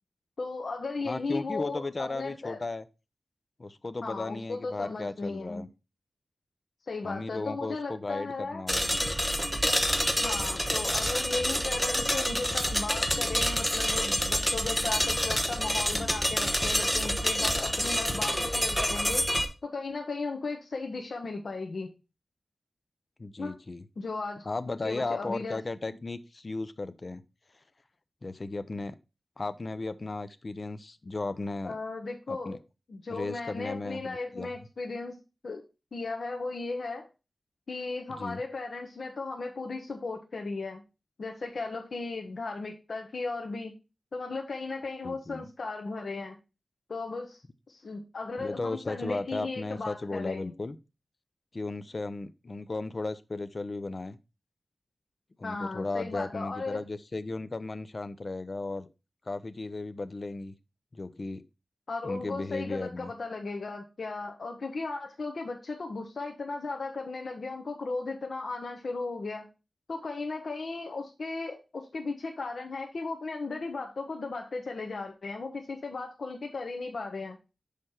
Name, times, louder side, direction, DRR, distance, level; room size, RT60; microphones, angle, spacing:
voice 1, 0.4-2.6 4.0-5.6 6.9-8.6 10.2-19.3 19.6-21.9 23.4-23.5 24.0-24.4 24.8-25.6 31.6-32.6 32.9-35.2 35.4-35.6 35.9-37.1 37.7-40.8 41.2-43.7 44.1-46.4 46.9-47.4 47.7-50.5 55.4-56.8 61.9-69.5 69.9-77.4, left 3 dB, 70° left, 2 dB, 1.0 m, -36 dB
voice 2, 1.0-2.8 3.6-5.7 7.0-9.0 23.2-23.8 24.4-27.2 28.2-29.0 29.4-31.8 32.3-32.6 33.1-34.5 38.1-38.4 45.0-45.4 48.4-50.8 51.5-54.2 55.4-58.9 59.3-60.5 60.9-61.4 62.0-63.1, left 3 dB, 45° left, 12 dB, 0.6 m, -35 dB
sound 1, 8.7-19.5, equal, 5° left, 1.1 m, -28 dB
6.5 x 5.1 x 4.3 m, 0.28 s
wide cardioid pair, 100°, 0 cm